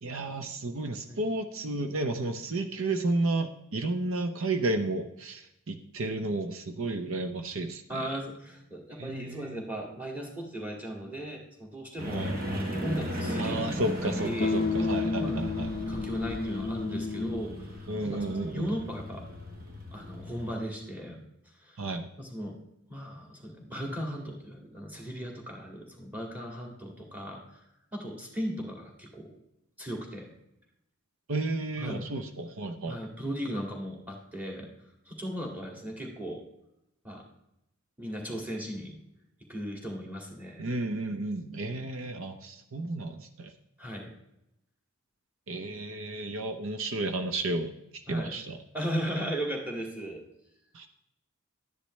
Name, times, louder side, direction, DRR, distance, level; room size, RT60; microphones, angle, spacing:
voice 1, 0.0-8.0 9.0-9.6 12.0-12.4 13.4-15.7 17.9-18.7 21.8-22.1 31.3-33.0 40.6-43.5 45.5-47.7 48.1-48.6 50.7-50.9, right 2 dB, 65° right, 7 dB, 0.7 m, -32 dB
voice 2, 7.9-13.8 14.0-14.5 15.2-15.5 15.9-19.2 19.9-21.2 21.6-21.8 22.2-22.6 22.9-27.6 27.9-29.3 29.8-30.3 31.8-32.1 32.9-34.7 35.1-36.4 37.0-37.2 38.0-39.0 39.5-40.7 43.8-44.1 48.1-48.3 48.7-50.2, equal, 5° right, 1 dB, 2.0 m, -37 dB
sound 1, 12.0-20.6, equal, 45° right, 1.7 m, -36 dB
sound 2, 14.4-17.6, left 3 dB, 40° left, 0.4 m, -31 dB
12.0 x 10.0 x 3.2 m, 0.85 s
head